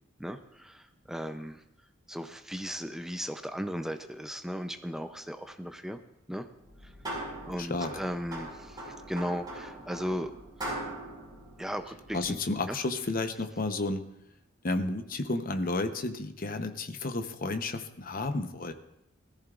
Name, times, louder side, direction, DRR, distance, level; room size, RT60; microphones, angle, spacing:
voice 1, 0.2-1.6 2.1-6.0 6.3-6.5 6.8-6.9 7.4-10.3 11.6-12.4 12.7-12.8, equal, ahead, 7 dB, 0.5 m, -36 dB
sound 1, 6.6-12.5, right 1 dB, 20° right, 5.4 m, -41 dB
voice 2, 7.6-7.9 12.1-14.0 14.6-18.7, left 2 dB, 45° left, 7 dB, 0.8 m, -32 dB
19.5 x 14.0 x 2.5 m, 0.84 s
head